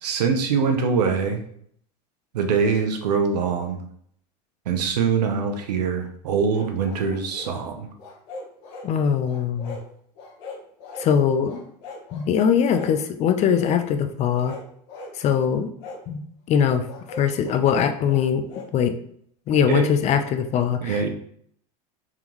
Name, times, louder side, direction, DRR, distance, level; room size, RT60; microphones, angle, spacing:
voice 1, 0.0-1.4 2.3-3.8 4.7-7.9 19.7-19.8 20.8-21.1, right 5 dB, 90° right, 5 dB, 0.8 m, -23 dB
sound 1, 6.5-7.6 8.0-8.9 9.2-9.9 10.2-11.1 11.4-12.3 12.7-13.0 13.6-13.8 14.3-15.2 15.8-16.0 16.9-18.7, left 3 dB, 60° left, 1.1 m, -39 dB
voice 2, 8.8-9.8 11.0-11.6 12.1-14.6 15.1-15.7 16.1-16.9 17.2-18.5 18.7-18.9 19.5-21.1, left 7 dB, 35° left, 8 dB, 0.4 m, -21 dB
3.6 x 3.6 x 3.0 m, 0.65 s
supercardioid pair, 115°, 20 cm